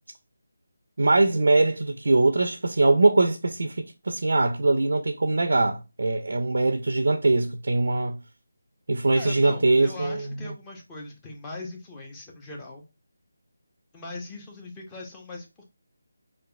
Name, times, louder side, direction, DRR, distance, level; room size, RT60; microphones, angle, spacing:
voice 1, 1.0-8.2 8.9-10.3, right 2 dB, 65° right, 0.4 m, -22 dB
voice 2, 9.1-12.8 13.9-15.6, left 2 dB, 15° left, 0.8 m, -40 dB
4.6 x 2.5 x 2.3 m
figure-of-eight pair, 160°, 0 cm